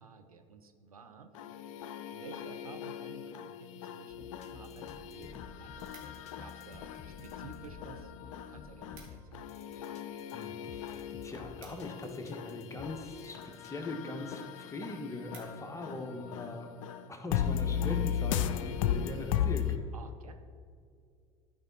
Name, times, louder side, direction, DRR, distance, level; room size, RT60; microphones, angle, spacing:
voice 1, 0.0-1.4 1.8-8.1 8.5-9.5 15.4-16.6 19.9-20.3, right 4 dB, 90° right, 6 dB, 0.6 m, -53 dB
sound 1, 1.3-19.8, left 9 dB, 70° left, 0.5 m, -37 dB
sound 2, 4.1-13.7, left 4 dB, 40° left, 1.0 m, -52 dB
sound 3, 5.9-6.5 7.2-7.7 8.0-8.2 8.4-8.5 8.7-9.4 9.7-12.6 13.3-13.6 14.1-14.2 14.6-14.7 14.9-15.9 16.4-16.6, right 5 dB, 50° right, 2.3 m, -59 dB
voice 2, 10.3-16.7 17.1-19.9, left 2 dB, 15° left, 4 dB, 1.3 m, -41 dB
13.0 x 5.1 x 4.0 m, 2.3 s
hypercardioid pair, 70°, 18 cm